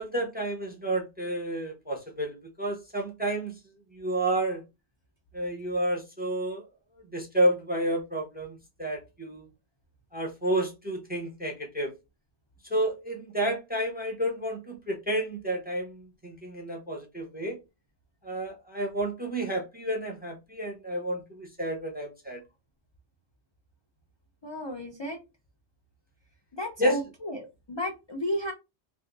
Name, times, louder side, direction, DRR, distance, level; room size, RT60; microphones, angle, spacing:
voice 1, 0.0-3.5 3.9-4.6 5.3-6.6 7.1-9.4 10.1-11.9 12.7-17.6 18.2-22.4 26.8-27.0, right 1 dB, 10° right, 0.7 m, -30 dB
voice 2, 24.4-25.2 26.5-28.5, equal, 35° left, 0.5 m, -33 dB
2.6 x 2.5 x 3.7 m
omnidirectional pair, 1.2 m